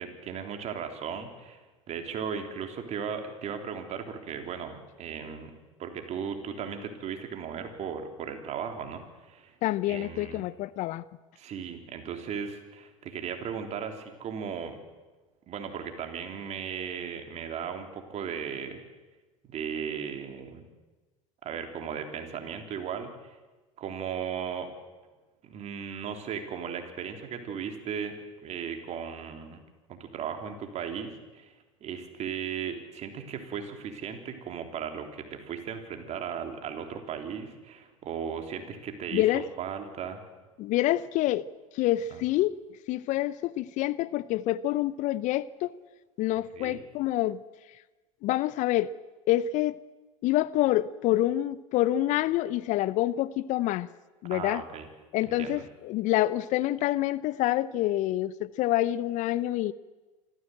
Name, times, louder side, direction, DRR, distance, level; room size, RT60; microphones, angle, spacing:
voice 1, 0.0-1.6 1.9-5.5 5.8-9.6 9.9-10.4 11.3-14.8 15.5-18.8 19.5-20.6 21.4-23.4 23.8-24.7 25.4-28.1 28.4-29.6 29.9-31.5 31.8-40.2 42.1-42.2 46.5-46.8 54.2-54.8 55.3-55.6, right 7 dB, 40° right, 5 dB, 3.4 m, -36 dB
voice 2, 9.6-11.0 39.1-39.4 40.6-41.5 41.7-42.6 42.9-45.7 46.2-47.4 48.2-48.9 49.3-49.8 50.2-53.9 54.2-54.6 55.1-59.7, left 15 dB, 45° left, 19 dB, 0.7 m, -27 dB
26.0 x 15.0 x 7.8 m, 1.2 s
hypercardioid pair, 85°, 18 cm